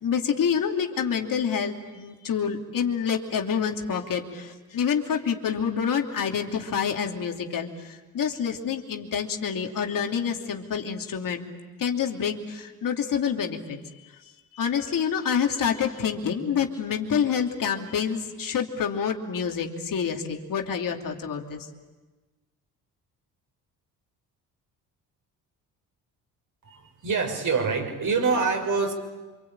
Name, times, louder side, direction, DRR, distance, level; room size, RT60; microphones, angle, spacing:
voice 1, 0.0-11.5 11.8-13.8 14.5-21.7, left 7 dB, 55° left, 3.0 m, -27 dB
voice 2, 26.6-28.9, right 4 dB, 50° right, 6.1 m, -25 dB
27.0 x 24.5 x 8.8 m
supercardioid pair, 65°, 39 cm